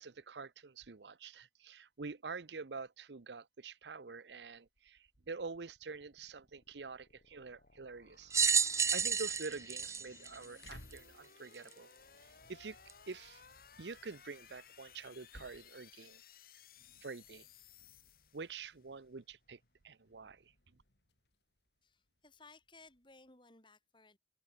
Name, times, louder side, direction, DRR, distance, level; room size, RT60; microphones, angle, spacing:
voice 1, 0.0-8.3 8.6-11.9 12.5-12.8 13.1-13.4 13.8-16.2 17.0-17.5 18.3-20.5, right 4 dB, 80° right, 0.8 m, -47 dB
sound 1, 4.3-18.9, left 7 dB, 55° left, 5.9 m, -61 dB
sound 2, 7.9-23.3, left 1 dB, 75° left, 6.5 m, -64 dB
sound 3, 8.3-11.0 11.7-11.8 12.9-13.0, right 6 dB, 15° right, 0.5 m, -31 dB
voice 2, 21.8-24.2, left 3 dB, 30° left, 4.8 m, -60 dB
head